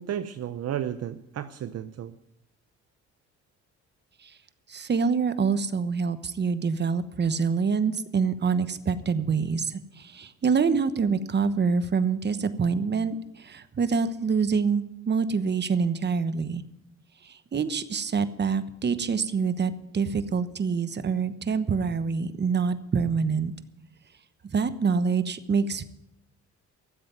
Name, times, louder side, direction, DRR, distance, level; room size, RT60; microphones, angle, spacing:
voice 1, 0.0-2.1, right 10 dB, 55° right, 11 dB, 0.7 m, -33 dB
voice 2, 4.7-16.6 17.2-23.5 24.5-25.8, right 5 dB, 35° right, 12 dB, 1.1 m, -26 dB
13.5 x 7.8 x 9.2 m, 0.80 s
cardioid pair, 90°, 30 cm